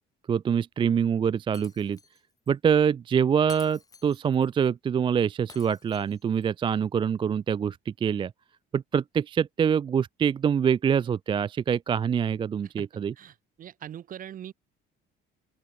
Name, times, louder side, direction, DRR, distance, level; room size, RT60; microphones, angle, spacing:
voice 1, 0.3-2.0 2.5-8.3 8.7-13.1, right 7 dB, 25° right, 0.4 m, -25 dB
Shatter, 1.5-2.2 2.5-2.6 3.5-4.5 5.5-6.5, left 4 dB, 15° left, 4.8 m, -49 dB
voice 2, 13.2-14.5, right 10 dB, 40° right, 2.4 m, -42 dB
open air
cardioid pair, 175°, 21 cm